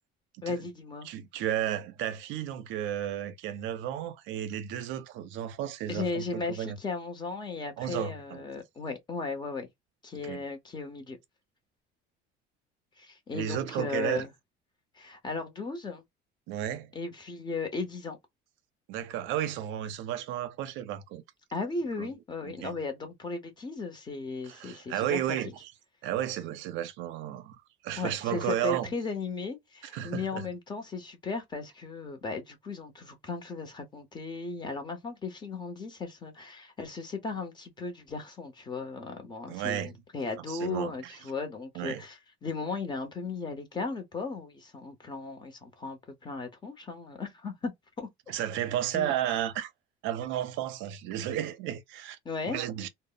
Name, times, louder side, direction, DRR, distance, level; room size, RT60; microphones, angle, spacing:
voice 1, 0.4-1.1 5.9-9.7 10.0-11.2 13.0-14.3 15.0-16.0 16.9-18.2 21.5-25.4 28.0-47.7 48.0-48.1 48.9-49.1 52.2-52.6, left 4 dB, 20° left, 0.7 m, -36 dB
voice 2, 1.0-6.8 7.8-8.4 10.2-10.4 13.3-14.2 16.5-16.9 18.9-21.2 22.0-22.1 22.4-22.8 24.4-25.7 26.0-27.6 27.8-28.9 29.8-30.5 39.5-40.0 40.5-41.1 41.8-42.0 48.3-49.7 50.0-52.2 52.5-52.9, right 11 dB, 70° right, 0.5 m, -33 dB
2.0 x 2.0 x 3.7 m
cardioid pair, 140°, 20 cm